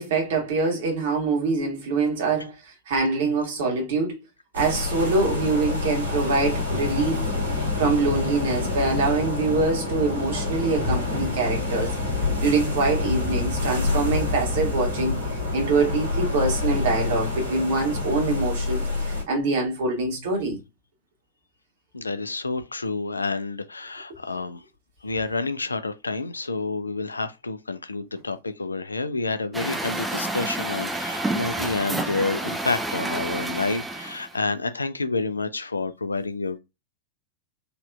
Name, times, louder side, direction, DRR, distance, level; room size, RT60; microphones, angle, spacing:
voice 1, 0.0-4.2 4.5-7.3 7.8-11.9 12.4-20.6, right 3 dB, 55° right, 1.5 m, -24 dB
sound 1, 4.5-19.2, left 3 dB, 75° right, 1.8 m, -27 dB
voice 2, 21.9-24.6 25.0-36.6, left 3 dB, 80° left, 0.4 m, -29 dB
Truck, 29.5-34.4, right 2 dB, 5° right, 0.5 m, -29 dB
4.1 x 2.8 x 2.3 m
figure-of-eight pair, 90°, 0 cm